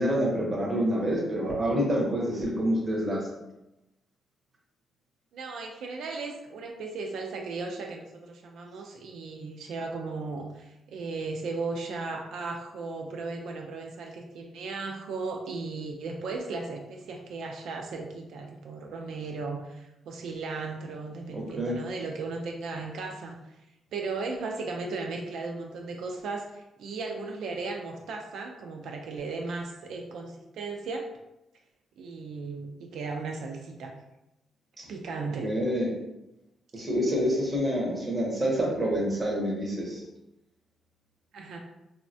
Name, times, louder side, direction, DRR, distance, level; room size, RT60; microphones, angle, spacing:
voice 1, 0.0-3.3 21.3-21.8 34.8-34.9 35.4-35.9 36.7-40.0, equal, 15° right, -3 dB, 0.7 m, -27 dB
voice 2, 5.3-23.4 23.9-31.1 32.0-33.9 34.9-35.5 36.8-36.9 41.3-41.6, right 3 dB, 75° right, 2 dB, 0.3 m, -36 dB
3.2 x 2.1 x 2.6 m, 0.91 s
wide cardioid pair, 175°, 0 cm